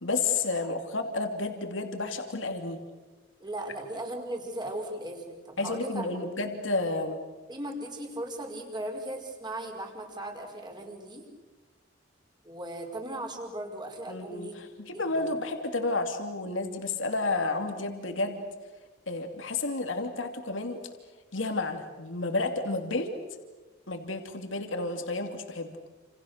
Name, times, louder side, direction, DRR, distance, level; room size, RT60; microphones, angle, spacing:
voice 1, 0.0-2.8 5.6-7.2 14.1-18.4 19.1-20.8 21.3-23.1 23.9-25.8, left 3 dB, 85° left, 5 dB, 2.8 m, -31 dB
voice 2, 3.4-6.1 7.5-11.3 12.4-14.5 14.9-15.1, right 1 dB, 25° right, 2 dB, 5.1 m, -37 dB
29.5 x 28.5 x 6.7 m, 1.2 s
head